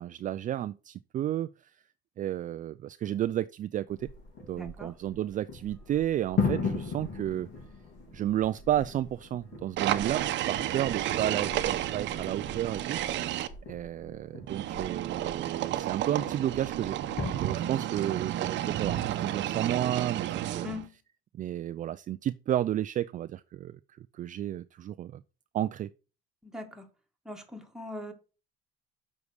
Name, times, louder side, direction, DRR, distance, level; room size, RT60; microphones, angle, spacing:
voice 1, 0.0-1.7 2.2-4.1 4.5-7.5 8.1-20.7 21.3-25.2 25.5-25.9, right 12 dB, 40° right, 0.4 m, -32 dB
Fireworks loud, 3.9-17.3, left 5 dB, 55° left, 3.7 m, -38 dB
voice 2, 4.6-4.9 20.6-21.0 26.4-26.9 27.3-28.1, left 2 dB, 5° right, 1.7 m, -41 dB
sound 1, 9.8-13.5 14.5-20.9, right 12 dB, 65° right, 0.8 m, -32 dB
7.2 x 4.8 x 6.4 m
cardioid pair, 105°, 20 cm